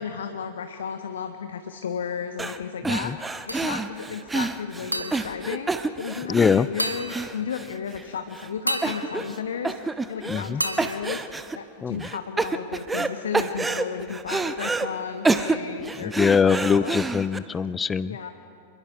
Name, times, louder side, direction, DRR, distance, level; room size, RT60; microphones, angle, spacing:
voice 1, 0.0-16.1 16.4-17.0 18.0-18.3, left 7 dB, 65° left, 7 dB, 1.0 m, -34 dB
sound 1, 2.4-2.6 2.8-8.0 8.3-8.5 8.8-9.4 9.6-10.5 10.8-11.6 12.0-13.1 13.3-14.9 15.2-17.4, right 3 dB, 10° right, 0.9 m, -28 dB
voice 2, 2.8-3.2 6.3-6.7 10.3-10.6 11.8-12.1 16.0-18.3, left 6 dB, 20° left, 19 dB, 0.5 m, -23 dB
sound 2, 3.5-4.1 4.9-6.3 6.8-7.8 8.7-10.1 10.6-12.0, equal, 90° right, 1.2 m, -34 dB
27.0 x 22.0 x 5.4 m, 2.6 s
figure-of-eight pair, 90°, 0 cm